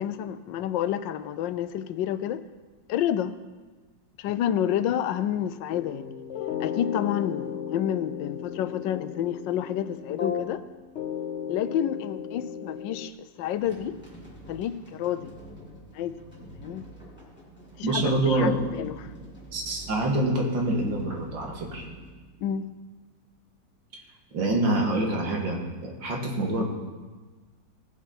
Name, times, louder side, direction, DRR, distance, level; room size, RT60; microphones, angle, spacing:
voice 1, 0.0-2.4 2.9-3.3 4.2-6.2 6.6-10.6 11.5-14.0 14.5-15.3 15.9-16.1 16.6-16.9 17.8-19.1 22.4-22.7, left 10 dB, 85° left, 13 dB, 1.3 m, -29 dB
sound 1, 5.7-10.7 11.0-13.1, left 8 dB, 60° left, 0.7 m, -35 dB
sound 2, 13.4-22.9, right 2 dB, 5° left, 3.2 m, -47 dB
voice 2, 17.8-18.6 19.5-21.8 24.3-26.6, right 1 dB, 90° right, -1 dB, 2.6 m, -26 dB
18.5 x 7.3 x 4.2 m, 1.3 s
omnidirectional pair, 2.0 m